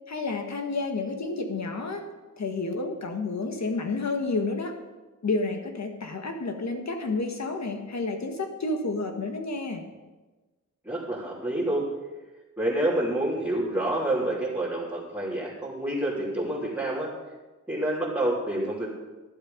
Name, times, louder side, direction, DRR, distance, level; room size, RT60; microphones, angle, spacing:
voice 1, 0.1-2.1 2.4-4.8 5.2-9.8, left 3 dB, 60° left, 4 dB, 1.8 m, -30 dB
voice 2, 10.8-11.8 12.6-17.1 17.7-18.9, right 1 dB, 5° right, -9 dB, 3.2 m, -28 dB
13.0 x 11.5 x 5.2 m, 1.2 s
wide cardioid pair, 130°, 31 cm